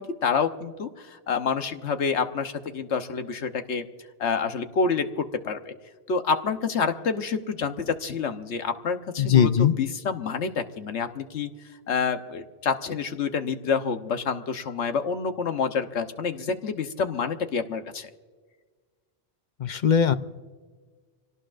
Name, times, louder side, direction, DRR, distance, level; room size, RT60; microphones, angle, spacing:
voice 1, 0.0-3.8 4.2-5.7 6.1-11.5 11.9-18.1, left 5 dB, 80° left, 7 dB, 1.3 m, -28 dB
voice 2, 9.2-9.7 19.6-20.1, left 8 dB, 55° left, 11 dB, 0.6 m, -19 dB
25.5 x 18.0 x 2.5 m, 1.5 s
omnidirectional pair, 1.2 m